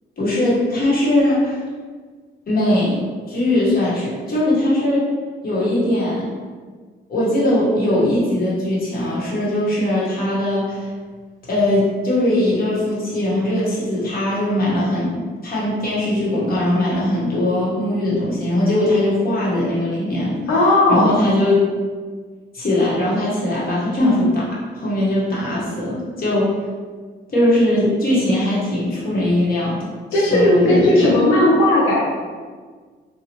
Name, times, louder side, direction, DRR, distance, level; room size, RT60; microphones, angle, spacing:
voice 1, 0.2-1.6 2.5-5.1 5.4-6.3 7.1-10.9 11.5-15.1 15.4-20.3 20.9-21.6 22.5-26.5 27.3-29.8 30.1-31.2, left 1 dB, 50° left, -7 dB, 1.2 m, -20 dB
voice 2, 20.5-21.2 30.1-32.0, left 1 dB, 90° left, -5 dB, 0.5 m, -15 dB
2.7 x 2.3 x 2.9 m, 1.5 s
cardioid pair, 90°, 20 cm